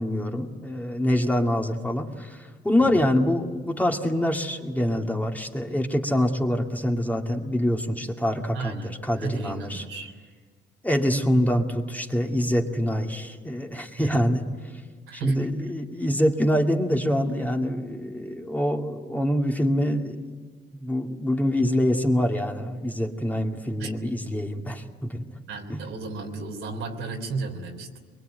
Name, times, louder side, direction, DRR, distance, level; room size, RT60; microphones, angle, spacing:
voice 1, 0.0-9.8 10.8-14.4 15.1-20.4 20.7-25.3 25.7-25.8, equal, 10° left, 2 dB, 2.3 m, -25 dB
voice 2, 8.5-10.1 14.0-14.3 15.1-15.5 23.8-23.9 25.5-28.0, right 4 dB, 85° right, 3 dB, 3.6 m, -33 dB
23.5 x 22.5 x 9.1 m, 1.5 s
cardioid pair, 90°, 20 cm